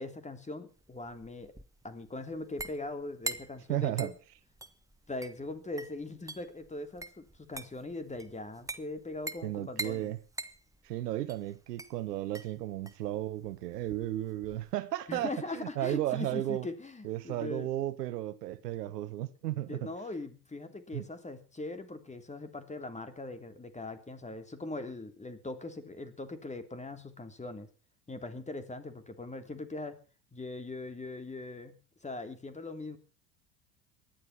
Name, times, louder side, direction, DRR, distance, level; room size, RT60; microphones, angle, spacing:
voice 1, 0.0-1.5 1.8-4.1 5.1-10.1 15.1-17.7 19.7-27.7 28.1-30.0 30.3-33.0, left 2 dB, 15° left, 3.2 m, -41 dB
sound 1, 0.8-14.7, right 2 dB, 5° right, 1.3 m, -44 dB
voice 2, 3.7-4.1 9.4-10.2 10.8-16.7 17.0-19.9 20.9-21.0, right 14 dB, 70° right, 1.3 m, -34 dB
19.0 x 12.5 x 6.0 m
figure-of-eight pair, 70°, 49 cm